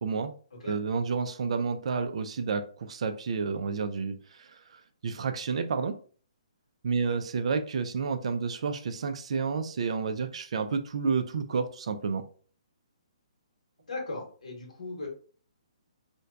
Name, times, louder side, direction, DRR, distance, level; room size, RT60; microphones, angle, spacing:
voice 1, 0.0-0.3 0.7-4.6 5.0-5.9 6.8-12.2, right 5 dB, 60° right, 8 dB, 0.3 m, -30 dB
voice 2, 13.9-15.1, left 3 dB, 85° left, -1 dB, 0.9 m, -37 dB
2.6 x 2.1 x 2.2 m, 0.42 s
hypercardioid pair, 165°, 4 cm